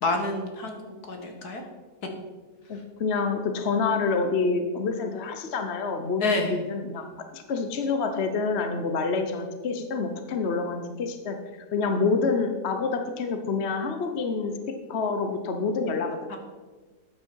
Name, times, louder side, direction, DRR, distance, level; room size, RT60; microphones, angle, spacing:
voice 1, 0.0-1.6 6.2-6.5 16.3-16.4, left 3 dB, 70° left, 4 dB, 2.1 m, -28 dB
voice 2, 2.7-11.4 11.7-14.5 14.9-16.2, left 4 dB, 45° left, 6 dB, 1.1 m, -27 dB
13.0 x 9.2 x 4.7 m, 1.3 s
omnidirectional pair, 1.7 m